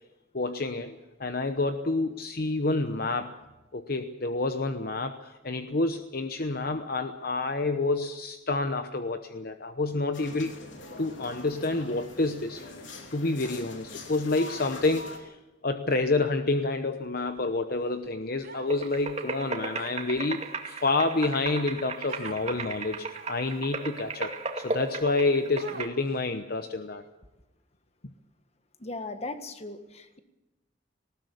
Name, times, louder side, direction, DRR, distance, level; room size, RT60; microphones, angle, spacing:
voice 1, 0.3-3.4 3.7-10.6 11.0-12.7 13.1-15.4 15.6-27.0, left 3 dB, 50° left, 8 dB, 1.0 m, -28 dB
sound 1, 10.1-15.2, left 2 dB, 90° left, 3.1 m, -43 dB
Human voice, 18.4-19.0 19.7-20.2 20.8-21.4 22.1-22.4 23.1-23.5 24.2-24.3 25.6-26.2, right 4 dB, 55° right, 2.9 m, -46 dB
sound 2, 18.7-25.9, right 3 dB, 35° right, 2.3 m, -36 dB
voice 2, 28.8-30.2, left 2 dB, 35° left, 9 dB, 1.7 m, -38 dB
19.5 x 18.5 x 8.4 m, 1.0 s
head